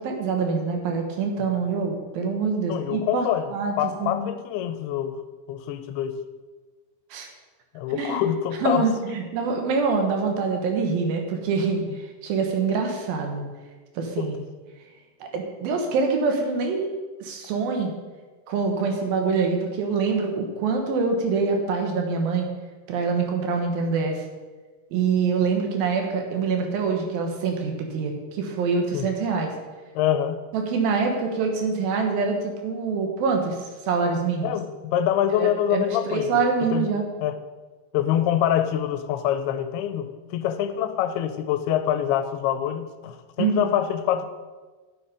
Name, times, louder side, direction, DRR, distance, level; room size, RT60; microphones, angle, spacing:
voice 1, 0.0-4.3 7.1-7.3 7.9-8.2 8.6-13.4 14.0-14.4 15.2-16.9 17.2-17.9 18.5-22.5 22.9-24.2 24.9-29.5 30.5-34.6 35.4-37.1 43.4-43.7, right 4 dB, 75° right, 3 dB, 2.9 m, -25 dB
voice 2, 2.7-5.2 5.5-6.2 7.7-9.2 14.2-14.3 28.9-29.1 30.0-30.4 34.4-36.4 36.7-37.4 37.9-44.3, left 10 dB, 85° left, 10 dB, 2.6 m, -25 dB
10.0 x 8.0 x 4.9 m, 1.3 s
omnidirectional pair, 4.5 m